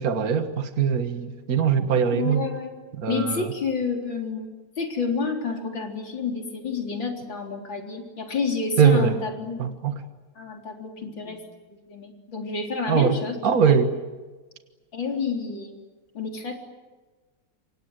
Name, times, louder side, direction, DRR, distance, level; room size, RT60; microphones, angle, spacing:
voice 1, 0.0-2.4 3.0-3.5 8.8-9.2 9.6-10.0 12.9-13.2 13.4-13.9, right 7 dB, 50° right, 7 dB, 1.9 m, -21 dB
voice 2, 2.1-2.7 3.1-4.5 4.8-9.6 10.4-11.4 11.7-13.4 13.7-13.8 14.9-15.8 16.1-16.5, left 5 dB, 90° left, 2 dB, 4.6 m, -29 dB
28.5 x 25.5 x 8.0 m, 1.3 s
omnidirectional pair, 2.0 m